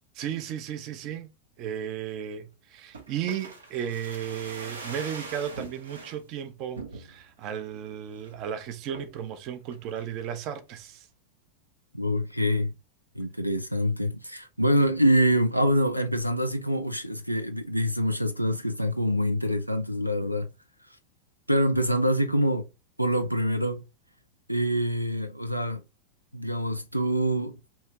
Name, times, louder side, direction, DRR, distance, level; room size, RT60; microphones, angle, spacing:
voice 1, 0.2-1.3 1.6-11.1, right 9 dB, 40° right, 0.6 m, -34 dB
sound 1, 2.9-6.2 6.7-7.4 7.8-7.9 8.1-8.4 8.9-9.3 9.7-10.4 10.7-10.8, right 3 dB, 70° right, 0.9 m, -42 dB
voice 2, 11.9-12.7 13.2-20.5 21.5-22.7 23.0-23.8 24.5-25.8 26.3-27.6, equal, 90° right, 0.4 m, -25 dB
5.5 x 2.9 x 2.9 m
figure-of-eight pair, 90°, 0 cm